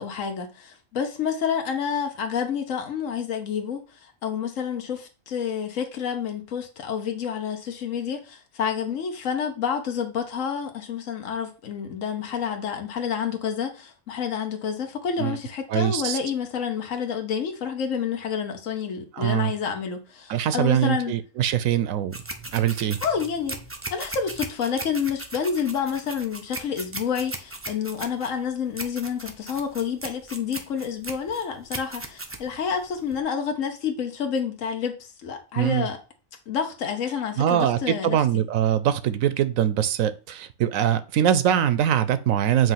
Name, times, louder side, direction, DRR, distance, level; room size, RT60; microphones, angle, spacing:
voice 1, 0.0-21.1 23.0-23.6 23.9-36.0 36.5-38.2, left 7 dB, 75° left, 1.4 m, -29 dB
voice 2, 15.7-16.2 19.1-19.5 20.3-22.2 22.5-23.0 35.6-35.9 37.4-42.7, right 10 dB, 80° right, 1.0 m, -23 dB
sound 1, 22.1-33.2, right 2 dB, 20° right, 0.3 m, -38 dB
7.8 x 2.7 x 5.6 m
omnidirectional pair, 1.4 m